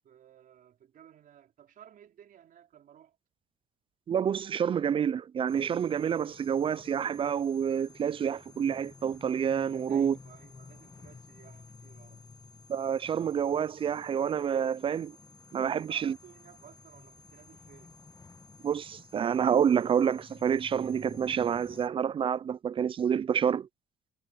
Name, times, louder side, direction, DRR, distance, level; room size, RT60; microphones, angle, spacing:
voice 1, 0.0-3.2 9.9-12.2 15.9-18.0, right 10 dB, 55° right, 4.5 m, -56 dB
voice 2, 4.1-10.2 12.7-15.2 15.5-16.2 18.6-23.7, right 8 dB, 30° right, 0.3 m, -28 dB
sound 1, 5.5-21.9, left 4 dB, 20° left, 1.3 m, -53 dB
cardioid pair, 110°, 17 cm